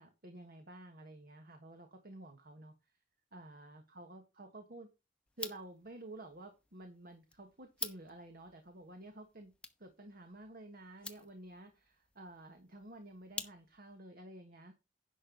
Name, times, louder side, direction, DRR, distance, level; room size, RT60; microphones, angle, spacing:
voice 1, 0.0-3.0 3.3-4.9 5.4-9.5 9.8-14.7, right 2 dB, 50° right, 6 dB, 1.5 m, -51 dB
sound 1, 5.3-14.0, left 3 dB, 5° left, 0.9 m, -50 dB
11.0 x 6.9 x 3.9 m, 0.26 s
head